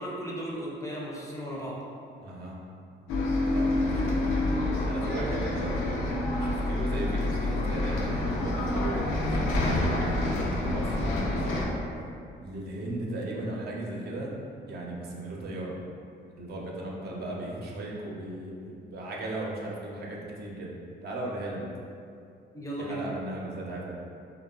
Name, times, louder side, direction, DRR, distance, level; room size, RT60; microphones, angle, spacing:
voice 1, 0.0-1.8 22.5-23.0, right 1 dB, 15° left, -5 dB, 0.5 m, -35 dB
voice 2, 2.2-2.6 3.5-5.9 6.4-11.8 12.4-14.3 14.7-15.7 16.4-20.7 21.0-21.6 22.8-24.0, right 1 dB, 55° right, -3 dB, 0.5 m, -37 dB
Bus, 3.1-11.7, left 1 dB, 85° left, 0.4 m, -27 dB
2.9 x 2.1 x 2.3 m, 2.4 s
cardioid pair, 90°, 20 cm